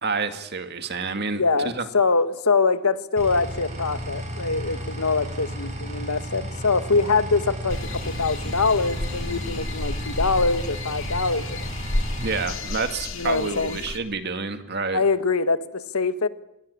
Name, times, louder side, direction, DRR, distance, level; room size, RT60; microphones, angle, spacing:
voice 1, 0.0-1.4 1.8-1.9 12.2-15.0, right 4 dB, 50° right, 8 dB, 2.3 m, -28 dB
voice 2, 1.3-11.7 13.2-13.8 14.9-16.3, left 4 dB, 80° left, 12 dB, 1.6 m, -24 dB
sound 1, 3.2-12.5, equal, 30° right, 8.0 m, -33 dB
sound 2, 7.7-14.0, left 2 dB, 60° left, 2.7 m, -32 dB
26.5 x 21.5 x 8.6 m, 0.82 s
head